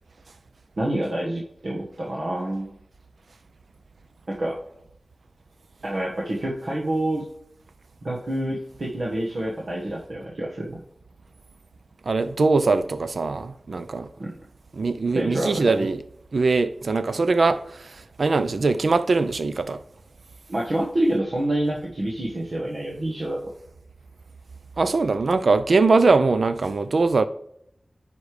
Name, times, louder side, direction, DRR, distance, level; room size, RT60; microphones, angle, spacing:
voice 1, 0.8-2.7 4.3-4.6 5.8-7.2 8.0-10.8 14.2-14.3 15.1-15.9 20.5-23.5, right 1 dB, 65° right, 1.3 m, -27 dB
voice 2, 12.1-14.1 14.7-16.0 16.3-19.8 24.8-27.3, right 3 dB, 80° right, 0.4 m, -21 dB
9.8 x 5.2 x 3.2 m
wide cardioid pair, 80°, 0 cm